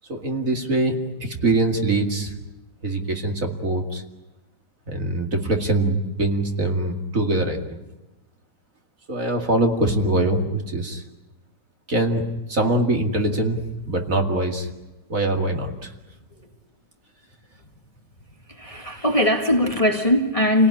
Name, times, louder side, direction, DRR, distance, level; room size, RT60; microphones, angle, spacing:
voice 1, 0.1-2.3 2.8-4.0 4.9-7.8 9.1-11.0 11.9-14.7 15.1-15.9, right 2 dB, 45° right, 2.7 m, -23 dB
voice 2, 18.5-20.7, left 1 dB, 20° left, 1.8 m, -20 dB
29.0 x 18.0 x 9.9 m
omnidirectional pair, 2.0 m